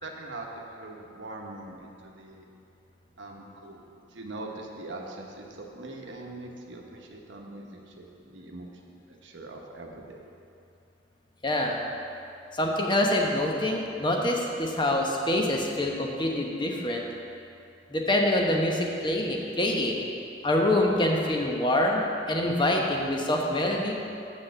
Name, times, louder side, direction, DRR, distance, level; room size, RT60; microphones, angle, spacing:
voice 1, 0.0-2.5 3.2-10.3, right 2 dB, 75° right, 0 dB, 1.0 m, -42 dB
voice 2, 11.4-11.8 12.5-17.0 17.9-20.1 20.4-23.9, left 1 dB, 25° left, 0 dB, 1.0 m, -25 dB
7.3 x 6.3 x 6.7 m, 2.6 s
head